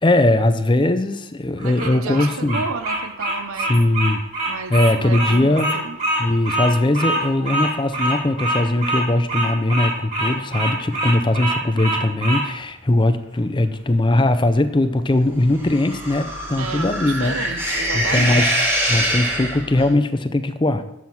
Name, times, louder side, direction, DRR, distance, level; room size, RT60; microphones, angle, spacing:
voice 1, 0.0-2.6 3.7-4.2 4.7-5.7 6.2-17.6 17.9-18.5 18.9-20.8, left 1 dB, 20° left, 11 dB, 0.5 m, -20 dB
Bird vocalization bird call bird song, 1.6-12.4, right 1 dB, 35° right, 2.9 m, -24 dB
voice 2, 1.6-3.7 4.5-6.0 16.6-18.5, right 4 dB, 80° right, 10 dB, 0.8 m, -32 dB
sound 1, 15.6-19.9, equal, 10° right, 1.6 m, -24 dB
7.8 x 5.9 x 7.1 m, 0.87 s
head